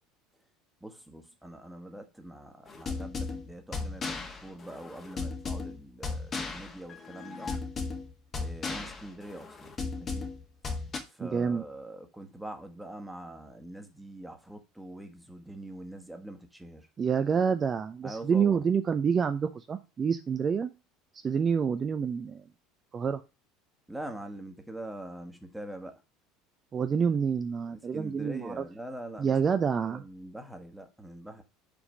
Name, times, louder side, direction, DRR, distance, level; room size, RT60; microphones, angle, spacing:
voice 1, 0.8-7.5 8.4-10.3 11.1-16.9 18.0-18.7 23.9-26.0 27.7-31.4, right 1 dB, 5° right, 1.4 m, -44 dB
sound 1, 2.7-11.0, left 4 dB, 30° left, 1.7 m, -36 dB
voice 2, 11.2-11.6 17.0-20.7 21.2-22.4 22.9-23.2 26.7-28.6 29.2-30.0, right 6 dB, 30° right, 0.6 m, -27 dB
5.3 x 4.9 x 6.1 m
figure-of-eight pair, 70°, 0 cm